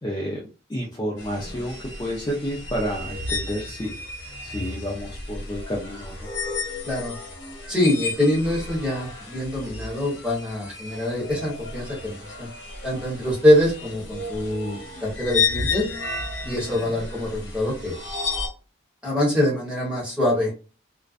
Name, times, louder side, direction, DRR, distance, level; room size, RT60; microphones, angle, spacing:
voice 1, 0.0-0.4 0.7-3.9 4.4-6.3 16.4-17.0, equal, 20° left, -2 dB, 0.3 m, -30 dB
sound 1, 1.2-18.5, left 4 dB, 65° left, 1.0 m, -32 dB
voice 2, 7.7-12.5 12.8-15.8 16.5-18.0 19.0-20.6, left 1 dB, 5° right, -5 dB, 1.1 m, -24 dB
2.4 x 2.1 x 2.4 m, 0.34 s
head